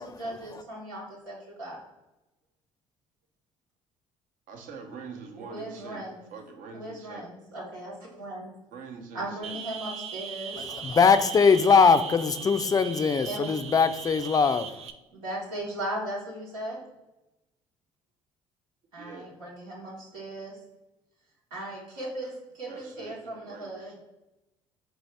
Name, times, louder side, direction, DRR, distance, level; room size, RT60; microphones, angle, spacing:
voice 1, 0.0-1.8 5.4-6.2 6.7-8.5 9.1-10.6 13.2-13.6 15.1-16.8 18.9-20.6 21.5-23.9, right 1 dB, 85° right, 1.2 m, -37 dB
voice 2, 4.5-6.0 6.3-7.2 8.7-9.6 19.0-19.3 22.7-23.7, right 5 dB, 60° right, 0.8 m, -44 dB
sound 1, 9.4-14.9, right 7 dB, 40° right, 0.4 m, -39 dB
voice 3, 10.6-14.8, left 5 dB, 25° left, 0.4 m, -21 dB
4.5 x 2.7 x 3.3 m
hypercardioid pair, 60°, 16 cm